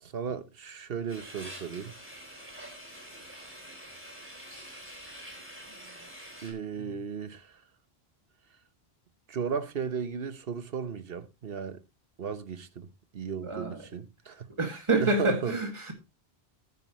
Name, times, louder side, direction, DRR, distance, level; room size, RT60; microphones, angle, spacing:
voice 1, 0.0-1.9 6.4-7.6 9.3-11.8 12.2-15.5, right 6 dB, 65° right, 1.2 m, -35 dB
sound 1, 1.1-6.5, equal, 10° right, 3.5 m, -46 dB
voice 2, 13.4-13.8 14.6-15.9, right 3 dB, 30° right, 2.1 m, -28 dB
13.5 x 10.0 x 3.0 m
omnidirectional pair, 1.0 m